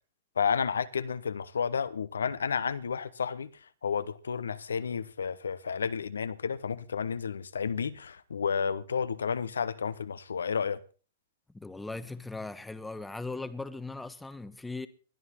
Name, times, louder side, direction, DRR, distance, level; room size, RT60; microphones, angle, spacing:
voice 1, 0.4-10.8, left 6 dB, 75° left, 0.9 m, -31 dB
voice 2, 11.5-14.9, left 3 dB, 5° left, 1.2 m, -39 dB
20.5 x 12.5 x 4.4 m
figure-of-eight pair, 105°, 0 cm